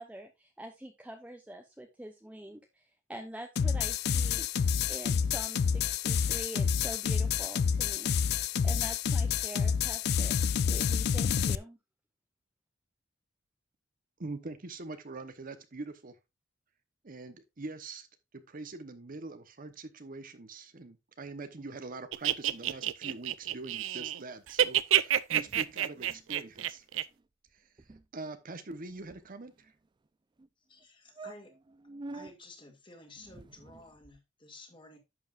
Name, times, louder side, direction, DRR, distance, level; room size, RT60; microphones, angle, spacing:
voice 1, 0.0-4.5 4.9-10.4 10.7-11.8, right 1 dB, 5° right, 0.8 m, -45 dB
sound 1, 3.6-11.6, left 7 dB, 55° left, 0.4 m, -28 dB
voice 2, 14.2-16.2 17.0-18.1 18.3-26.9 27.5-27.7 28.1-29.7, right 3 dB, 45° right, 0.9 m, -43 dB
sound 2, 22.1-24.2 24.5-27.0, right 11 dB, 80° right, 0.5 m, -28 dB
sound 3, 25.4-26.3 26.5-26.7 27.0-27.2 27.5-27.6 27.8-28.0 28.7-29.7 30.4-30.5 30.8-30.9 31.2-32.3 33.2-34.2, right 2 dB, 25° right, 0.4 m, -48 dB
voice 3, 30.7-31.5 32.1-35.0, left 2 dB, 25° left, 2.2 m, -52 dB
11.0 x 7.2 x 2.4 m
head